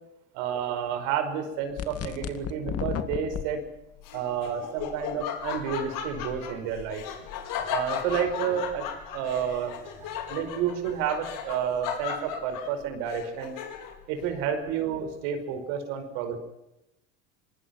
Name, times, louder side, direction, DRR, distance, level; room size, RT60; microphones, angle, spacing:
voice 1, 0.3-3.7 4.1-7.0 7.7-8.9 9.1-13.6 14.1-16.4, right 8 dB, 70° right, 8 dB, 5.3 m, -30 dB
sound 1, 1.8-3.4, left 9 dB, 40° left, 2.3 m, -32 dB
Laughter, 4.0-14.1, left 8 dB, 55° left, 5.1 m, -36 dB
24.5 x 21.0 x 6.1 m, 0.87 s
hypercardioid pair, 90°, 39 cm